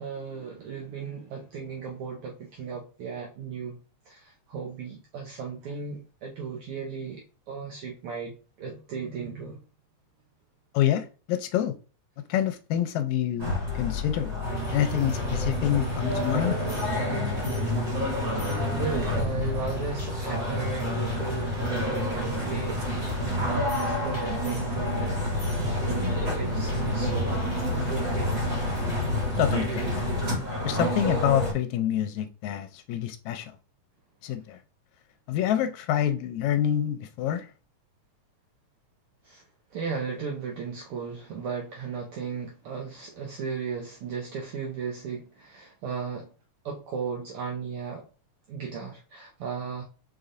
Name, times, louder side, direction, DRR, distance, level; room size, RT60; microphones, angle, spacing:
voice 1, 0.0-3.8 4.1-9.6 18.4-22.8 23.2-25.3 25.6-27.4 27.7-28.5 39.2-39.4 39.7-46.3 46.6-48.0 48.5-49.8, right 6 dB, 80° right, 1.2 m, -36 dB
voice 2, 10.7-11.8 12.3-14.3 14.7-16.6 29.4-30.1 30.6-33.5 34.2-34.6 35.3-37.5, left 11 dB, 80° left, 1.8 m, -27 dB
sound 1, 13.4-31.5, left 1 dB, 45° right, 2.6 m, -29 dB
sound 2, 14.4-30.0, right 1 dB, 20° left, 2.7 m, -36 dB
5.2 x 3.9 x 2.5 m
omnidirectional pair, 3.4 m